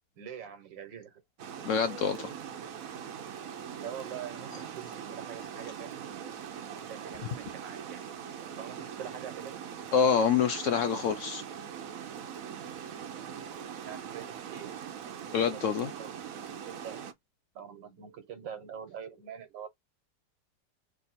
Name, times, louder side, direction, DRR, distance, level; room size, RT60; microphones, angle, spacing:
voice 1, 0.2-1.2 3.8-6.2 6.9-8.0 8.6-9.6 13.8-14.7 15.5-17.1 17.6-19.7, right 8 dB, 90° right, 1.8 m, -44 dB
Water, 1.4-17.1, right 8 dB, 60° right, 1.0 m, -42 dB
voice 2, 1.6-2.3 9.9-11.4 15.3-15.9, left 7 dB, 75° left, 0.7 m, -26 dB
3.5 x 2.8 x 4.1 m
omnidirectional pair, 1.9 m